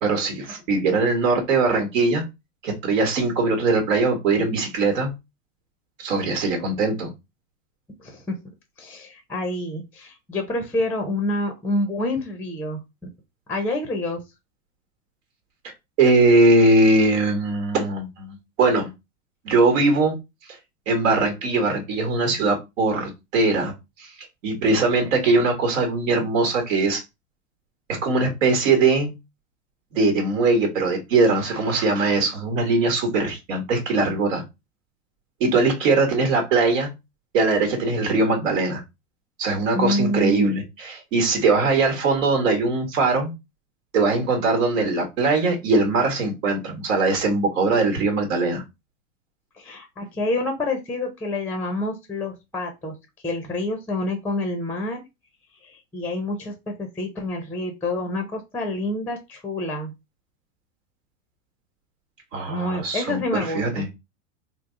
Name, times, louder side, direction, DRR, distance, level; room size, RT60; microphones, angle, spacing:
voice 1, 0.0-2.2 2.6-5.1 6.0-7.1 16.0-18.9 19.4-20.1 20.5-20.6 20.9-23.7 24.0-24.1 24.4-27.0 28.0-29.1 29.9-34.4 35.4-36.9 37.3-38.8 39.4-43.3 43.9-48.6 62.3-63.2 63.5-63.8, right 3 dB, 75° right, 3 dB, 1.3 m, -21 dB
voice 2, 8.0-8.4 8.8-12.8 13.5-14.2 39.7-40.6 49.6-53.0 53.2-55.0 55.6-59.9 62.5-63.8, left 1 dB, 5° left, 5 dB, 0.5 m, -27 dB
3.4 x 2.0 x 3.6 m, 0.23 s
hypercardioid pair, 120°, 39 cm